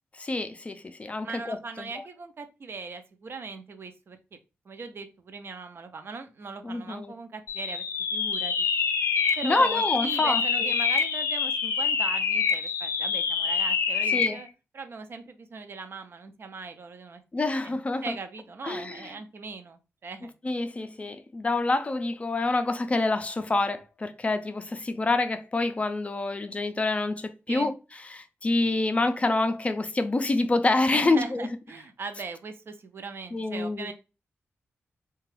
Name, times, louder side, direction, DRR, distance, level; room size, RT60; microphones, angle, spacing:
voice 1, 0.2-2.1 6.6-7.1 9.4-10.7 14.1-14.4 17.3-18.1 18.6-19.1 20.4-27.7 28.0-31.5 33.3-33.9, left 2 dB, 30° left, 0.4 m, -27 dB
voice 2, 1.1-4.4 4.7-7.8 8.1-8.7 9.4-14.5 14.7-17.2 17.6-20.3 27.5-27.7 30.9-33.9, right 4 dB, 55° right, 0.5 m, -39 dB
sound 1, 7.5-14.4, left 6 dB, 85° left, 0.5 m, -26 dB
2.9 x 2.2 x 3.1 m
wide cardioid pair, 100°, 5 cm